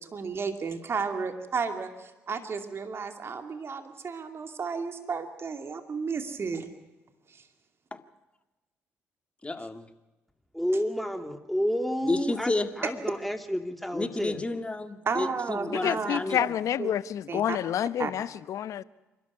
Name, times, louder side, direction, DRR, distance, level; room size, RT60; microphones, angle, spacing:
voice 1, 0.1-6.7 12.8-12.9 15.0-16.5 16.8-16.9 17.3-17.6 18.0-18.1, right 5 dB, 45° right, 2.5 m, -33 dB
voice 2, 9.4-9.9 12.0-12.7 13.9-16.4, left 2 dB, 20° left, 2.1 m, -30 dB
voice 3, 10.5-12.5 12.8-14.4, equal, ahead, 2.9 m, -30 dB
voice 4, 15.7-18.8, left 10 dB, 65° left, 0.9 m, -29 dB
27.5 x 12.5 x 9.7 m
supercardioid pair, 65°, 6 cm